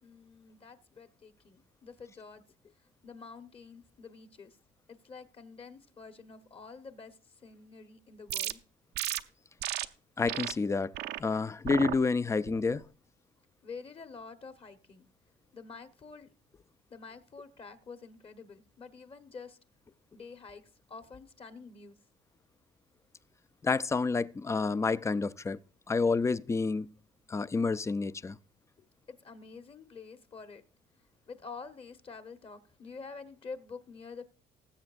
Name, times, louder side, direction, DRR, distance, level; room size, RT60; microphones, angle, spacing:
voice 1, 0.0-2.4 3.0-4.6 4.9-8.6 13.6-15.1 15.5-16.3 16.9-19.6 20.1-22.0 29.1-30.6 31.3-34.2, left 4 dB, 35° left, 1.1 m, -48 dB
sound 1, 8.3-8.5 9.0-9.2 9.6-9.9 10.3-10.5 10.9-11.2 11.7-12.0 12.5-12.8, right 13 dB, 75° right, 0.6 m, -34 dB
voice 2, 10.2-10.9 11.2-12.8 23.6-25.6 25.9-26.9 27.3-28.4, left 4 dB, 15° left, 0.4 m, -29 dB
19.5 x 7.8 x 2.5 m
cardioid pair, 110°, 17 cm